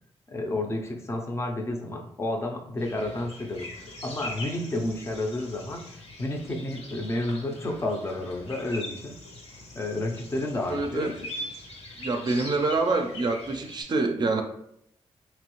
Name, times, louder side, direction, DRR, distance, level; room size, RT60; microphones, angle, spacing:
voice 1, 0.3-9.1 9.7-11.1, left 1 dB, 25° left, 2 dB, 0.5 m, -31 dB
sound 1, 2.8-13.8, left 1 dB, 75° left, 1.3 m, -42 dB
voice 2, 10.7-11.1 12.0-14.4, right 3 dB, 40° right, 4 dB, 0.4 m, -26 dB
4.1 x 3.0 x 3.0 m, 0.75 s
wide cardioid pair, 155°, 11 cm